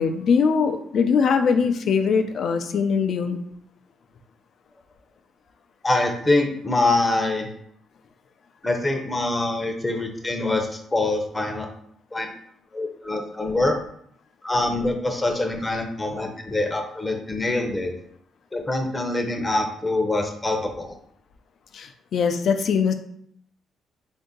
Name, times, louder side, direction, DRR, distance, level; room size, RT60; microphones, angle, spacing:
voice 1, 0.0-3.4 21.7-22.9, left 6 dB, 60° left, 7 dB, 0.5 m, -21 dB
voice 2, 5.8-7.5 8.6-11.7 12.1-12.3 12.7-13.8 14.4-17.9 18.5-20.9, left 2 dB, 15° left, 3 dB, 0.7 m, -24 dB
3.8 x 2.7 x 3.7 m, 0.68 s
cardioid pair, 90°, 0 cm